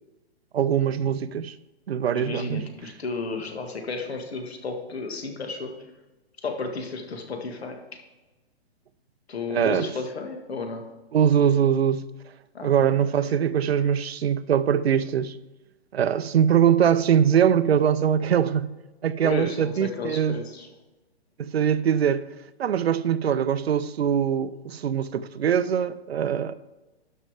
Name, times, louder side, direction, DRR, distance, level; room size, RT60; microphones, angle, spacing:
voice 1, 0.5-1.5 1.9-2.6 9.5-9.9 11.1-12.1 12.6-15.4 15.9-18.7 19.0-20.4 21.4-22.2 22.6-26.5, right 8 dB, 70° right, 0.6 m, -22 dB
voice 2, 2.1-5.7 6.4-8.0 9.3-10.9 12.5-13.0 19.2-20.7, left 4 dB, 70° left, 1.9 m, -33 dB
12.5 x 5.6 x 4.8 m
hypercardioid pair, 180°, 32 cm